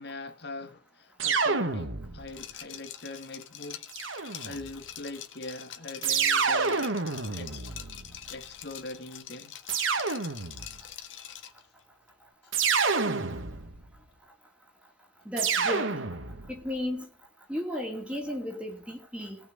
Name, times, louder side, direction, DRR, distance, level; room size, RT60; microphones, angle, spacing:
voice 1, 0.0-3.8 4.4-6.9 7.3-7.6 8.3-9.6 13.0-13.1, left 2 dB, 55° left, 1.9 m, -42 dB
sound 1, 1.2-2.4 3.9-4.8 6.0-8.4 9.7-10.8 12.5-13.9 15.4-16.6, right 5 dB, 80° right, 1.9 m, -28 dB
Liquid, 2.3-11.6, left 10 dB, 75° left, 1.9 m, -44 dB
voice 2, 15.2-16.0 16.5-17.1 17.5-19.4, left 1 dB, 5° right, 3.4 m, -34 dB
17.5 x 6.3 x 8.0 m
head